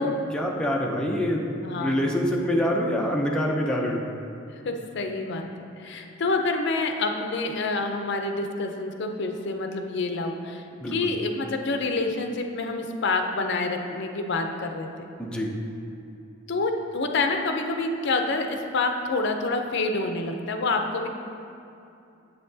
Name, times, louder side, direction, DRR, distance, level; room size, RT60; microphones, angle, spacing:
voice 1, 0.0-4.1 10.8-10.9 15.2-15.5, equal, 5° left, -2 dB, 0.5 m, -26 dB
voice 2, 1.6-2.2 4.6-14.9 16.5-21.1, left 3 dB, 60° left, 4 dB, 0.5 m, -27 dB
7.9 x 5.6 x 2.7 m, 2.7 s
head